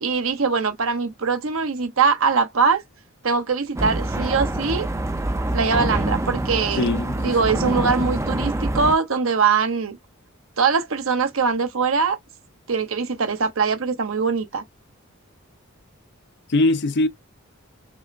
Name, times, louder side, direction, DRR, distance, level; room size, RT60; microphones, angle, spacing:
voice 1, 0.0-2.8 3.2-4.9 5.5-6.8 7.2-10.0 10.6-12.2 12.7-14.6, right 5 dB, 70° right, 0.8 m, -22 dB
sound 1, 3.8-8.9, right 1 dB, 15° right, 0.6 m, -25 dB
voice 2, 6.8-7.3 16.5-17.1, left 2 dB, 55° left, 0.6 m, -21 dB
6.0 x 2.0 x 2.5 m
head